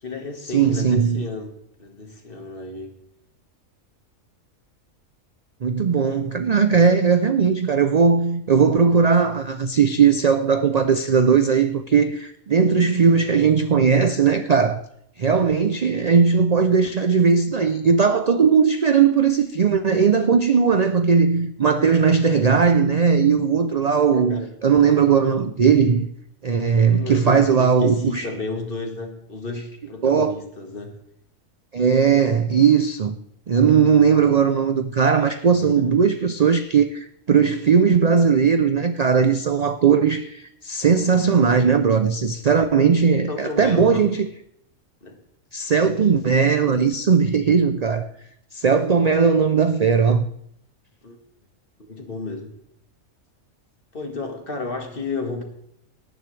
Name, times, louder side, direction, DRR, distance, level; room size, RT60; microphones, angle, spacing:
voice 1, 0.0-2.9 24.1-24.5 26.8-31.0 35.5-35.9 43.3-44.1 45.0-45.2 51.0-51.2 51.9-52.5 53.9-55.4, left 3 dB, 40° left, 1.9 m, -32 dB
voice 2, 0.5-1.2 5.6-14.8 15.2-26.1 26.4-28.3 30.0-30.3 31.7-33.2 33.5-44.3 45.5-48.1 48.5-50.2, right 6 dB, 55° right, 0.4 m, -18 dB
18.5 x 10.0 x 3.3 m
omnidirectional pair, 1.4 m